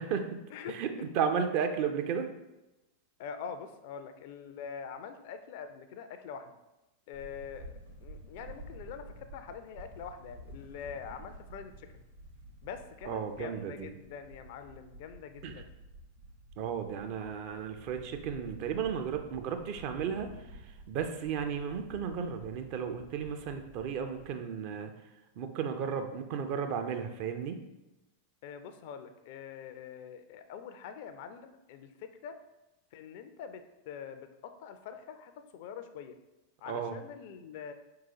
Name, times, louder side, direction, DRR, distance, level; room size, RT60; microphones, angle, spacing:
voice 1, 0.0-0.4 0.7-2.3 13.1-13.9 15.4-15.6 16.6-20.3 20.9-24.9 25.4-27.6 36.7-37.0, right 7 dB, 45° right, 6 dB, 0.4 m, -34 dB
voice 2, 3.2-6.5 7.1-7.6 8.0-11.9 12.6-15.7 28.4-32.4 32.9-36.1 36.6-37.7, left 7 dB, 50° left, 9 dB, 0.3 m, -44 dB
sound 1, 7.1-24.3, right 1 dB, 70° right, 1.5 m, -51 dB
4.7 x 3.8 x 2.8 m, 0.98 s
figure-of-eight pair, 90°, 0 cm